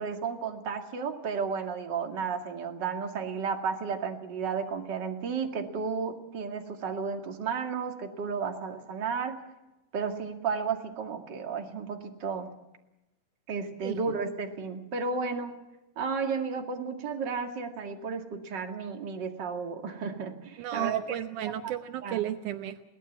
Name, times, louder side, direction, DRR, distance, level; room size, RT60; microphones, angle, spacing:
voice 1, 0.0-9.4 9.9-12.5 13.5-15.6 16.0-21.5 22.0-22.3, right 5 dB, 40° right, 4 dB, 2.4 m, -33 dB
voice 2, 20.6-22.8, right 12 dB, 75° right, 9 dB, 2.3 m, -33 dB
22.5 x 18.0 x 7.2 m, 0.99 s
omnidirectional pair, 3.7 m